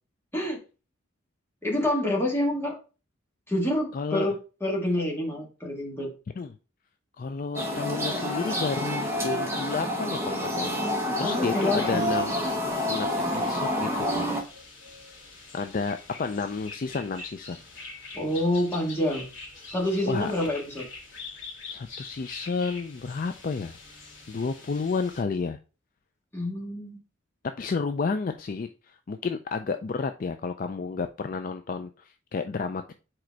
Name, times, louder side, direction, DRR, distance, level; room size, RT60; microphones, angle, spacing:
voice 1, 1.6-2.8 3.5-4.4 4.6-6.1 11.2-12.1 18.1-19.2 19.7-20.8 26.3-27.0, left 1 dB, 10° left, -2 dB, 1.8 m, -27 dB
voice 2, 3.9-4.3 6.4-6.6 7.2-12.3 12.8-14.3 15.5-17.6 20.1-20.3 21.7-23.8 24.3-25.6 27.6-32.9, left 4 dB, 40° left, 8 dB, 0.3 m, -31 dB
sound 1, 7.5-14.4, left 1 dB, 15° right, 1.2 m, -28 dB
sound 2, 11.5-25.2, left 3 dB, 65° left, 2.6 m, -45 dB
4.9 x 4.4 x 4.5 m, 0.33 s
head